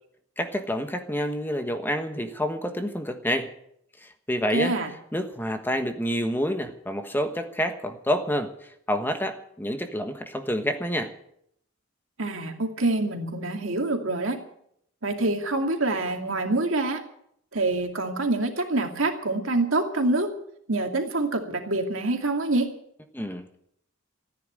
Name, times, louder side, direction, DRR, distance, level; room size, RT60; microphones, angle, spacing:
voice 1, 0.4-3.5 4.0-4.7 5.1-8.5 8.9-11.1 23.1-23.6, equal, 10° left, 7 dB, 1.3 m, -28 dB
voice 2, 4.5-4.9 12.2-14.4 15.0-17.0 17.5-20.3 20.7-22.7, right 2 dB, 75° right, 4 dB, 2.5 m, -26 dB
15.0 x 10.0 x 8.9 m, 0.72 s
head